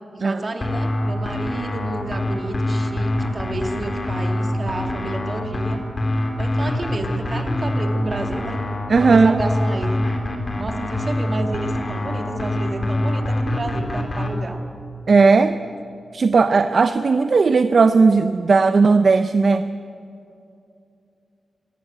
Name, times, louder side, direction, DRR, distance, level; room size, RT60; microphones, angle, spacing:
voice 1, 0.1-5.8 6.4-8.6 9.0-10.0 10.6-14.6, right 2 dB, 35° right, 4 dB, 2.1 m, -30 dB
sound 1, 0.6-14.3, left 1 dB, 35° left, 3.3 m, -24 dB
voice 2, 8.9-9.4 15.1-15.6 16.1-19.7, right 4 dB, 50° right, 10 dB, 0.6 m, -16 dB
24.0 x 15.0 x 9.1 m, 2.6 s
wide cardioid pair, 125°, 0 cm